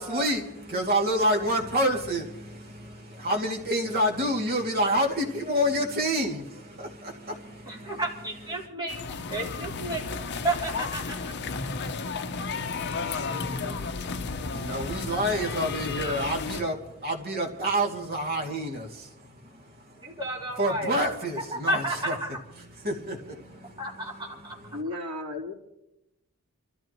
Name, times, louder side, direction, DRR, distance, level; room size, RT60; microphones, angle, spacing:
voice 1, 0.0-8.0 8.3-8.7 12.8-20.2 20.6-22.2 22.6-24.8, equal, 45° right, 1 dB, 2.4 m, -29 dB
voice 2, 7.7-9.0 9.3-11.5 12.4-13.9 20.0-20.9 21.5-22.3 23.8-24.6, right 2 dB, 20° right, -3 dB, 3.9 m, -33 dB
sound 1, 8.9-16.6, left 4 dB, 50° left, 0.7 m, -33 dB
voice 3, 24.7-25.5, left 2 dB, 90° right, -5 dB, 3.0 m, -34 dB
28.5 x 14.5 x 3.0 m, 0.86 s
head